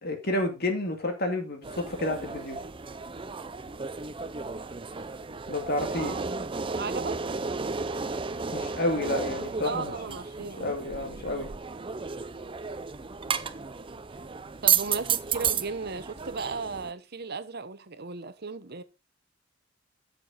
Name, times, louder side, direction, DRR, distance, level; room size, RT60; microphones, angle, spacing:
voice 1, 0.0-2.6 5.5-6.2 8.5-11.5, left 1 dB, 50° left, 2.2 m, -30 dB
sound 1, 1.6-16.9, right 6 dB, 25° right, 0.5 m, -33 dB
voice 2, 5.9-6.4 6.7-7.2 9.6-10.8 14.6-18.8, right 4 dB, 50° right, 0.9 m, -36 dB
9.1 x 6.8 x 3.8 m
head